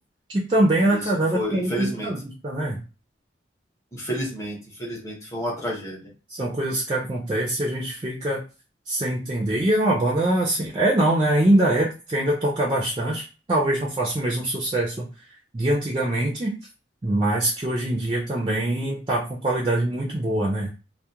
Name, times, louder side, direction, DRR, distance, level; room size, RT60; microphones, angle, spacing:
voice 1, 0.3-2.8 6.3-8.4 8.9-15.0 15.5-16.5 17.0-20.7, right 1 dB, 25° right, -2 dB, 0.4 m, -23 dB
voice 2, 1.3-2.1 3.9-6.0, equal, 15° left, -2 dB, 0.8 m, -30 dB
2.3 x 2.0 x 2.7 m, 0.33 s
head